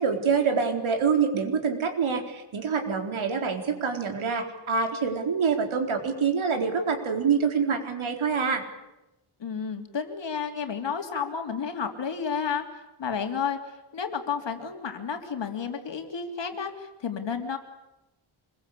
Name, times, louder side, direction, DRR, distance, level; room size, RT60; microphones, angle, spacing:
voice 1, 0.0-8.6, right 5 dB, 75° right, 4 dB, 4.3 m, -26 dB
voice 2, 9.4-12.6 13.0-13.6 13.9-17.6, left 6 dB, 60° left, 5 dB, 3.3 m, -31 dB
26.0 x 22.0 x 8.5 m, 0.93 s
wide cardioid pair, 170°, 49 cm